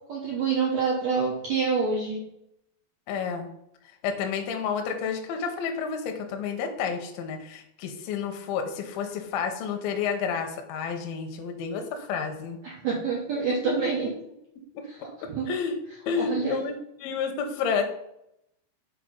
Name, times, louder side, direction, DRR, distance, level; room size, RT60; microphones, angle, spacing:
voice 1, 0.1-2.2 12.6-14.1 14.9-15.0 15.3-15.5 16.2-16.6, right 5 dB, 85° right, -4 dB, 1.5 m, -27 dB
voice 2, 3.1-3.5 4.0-12.6 14.7-14.8 15.2-15.8 16.1-17.8, left 6 dB, 75° left, 5 dB, 2.2 m, -30 dB
6.6 x 4.4 x 5.2 m, 0.78 s
omnidirectional pair, 5.2 m